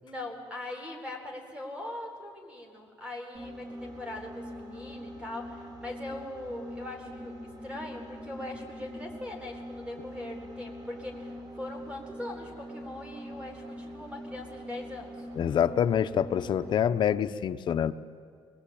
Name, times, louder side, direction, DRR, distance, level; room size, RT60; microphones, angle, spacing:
voice 1, 0.0-15.3, left 1 dB, 10° right, 2 dB, 3.9 m, -41 dB
sound 1, 3.3-16.9, equal, 40° right, 4.3 m, -43 dB
voice 2, 15.4-17.9, left 9 dB, 50° left, 10 dB, 0.8 m, -26 dB
25.0 x 21.5 x 8.7 m, 2.1 s
cardioid pair, 140°, 10 cm